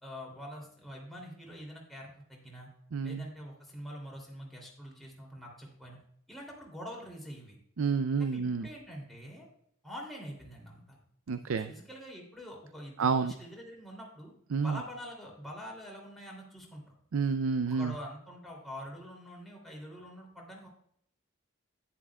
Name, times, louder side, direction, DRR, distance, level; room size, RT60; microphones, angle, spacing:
voice 1, 0.0-2.7 3.0-6.0 6.3-7.6 8.2-9.5 9.8-11.0 11.4-14.3 14.6-16.9 17.7-20.7, equal, ahead, -2 dB, 2.8 m, -45 dB
voice 2, 2.9-3.3 7.8-8.7 11.3-11.7 13.0-13.3 14.5-14.8 17.1-17.9, right 5 dB, 75° right, 10 dB, 0.5 m, -29 dB
11.0 x 10.5 x 2.3 m, 0.70 s
head